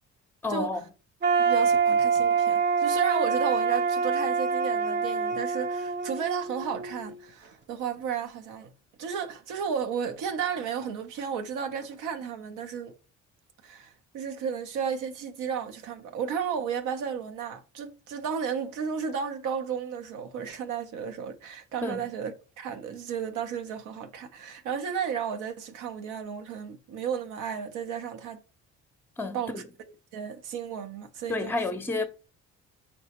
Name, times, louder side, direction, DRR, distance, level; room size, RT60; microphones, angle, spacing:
voice 1, 0.4-0.9 21.8-22.1 29.2-29.6 31.3-32.0, left 2 dB, 5° left, 0.5 m, -30 dB
sound 1, 1.2-7.1, right 5 dB, 40° right, 0.5 m, -25 dB
voice 2, 1.4-8.7 9.0-12.9 13.6-28.4 29.3-29.6 30.1-31.5, right 7 dB, 90° right, 0.6 m, -33 dB
3.9 x 3.3 x 2.8 m
cardioid pair, 90°, 30 cm